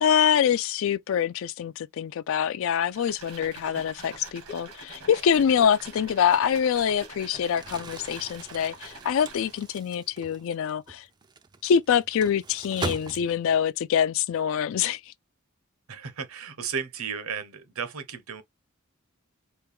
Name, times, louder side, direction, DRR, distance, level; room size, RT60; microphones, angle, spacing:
voice 1, 0.0-11.1 11.6-15.1, left 8 dB, 65° left, 0.3 m, -25 dB
sound 1, 2.9-9.8, right 3 dB, 90° right, 1.7 m, -45 dB
Crumpling crinkling, 7.5-13.7, right 3 dB, 20° right, 0.3 m, -40 dB
voice 2, 15.9-18.4, right 6 dB, 75° right, 0.9 m, -34 dB
4.4 x 2.3 x 3.4 m
head